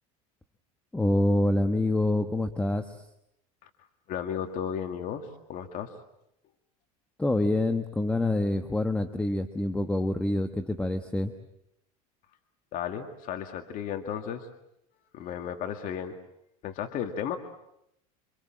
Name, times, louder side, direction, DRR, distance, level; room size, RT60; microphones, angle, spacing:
voice 1, 0.9-3.0 7.2-11.3, left 1 dB, 5° left, 8 dB, 1.3 m, -26 dB
voice 2, 4.1-5.9 12.7-14.5 15.1-16.1 16.6-17.4, left 8 dB, 50° left, 5 dB, 2.1 m, -34 dB
27.5 x 25.5 x 7.5 m, 0.80 s
supercardioid pair, 120°, 18 cm